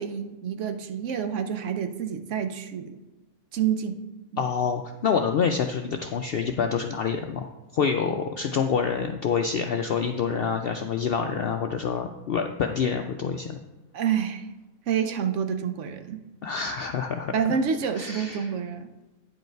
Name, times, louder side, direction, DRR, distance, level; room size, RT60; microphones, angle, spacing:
voice 1, 0.0-3.0 3.5-4.0 4.3-4.4 13.9-14.5 14.9-16.2 17.3-18.9, right 7 dB, 65° right, 8 dB, 0.9 m, -28 dB
voice 2, 4.4-13.6 16.4-17.3 18.0-18.5, left 6 dB, 70° left, 5 dB, 0.5 m, -27 dB
9.5 x 5.3 x 4.5 m, 1.1 s
omnidirectional pair, 1.5 m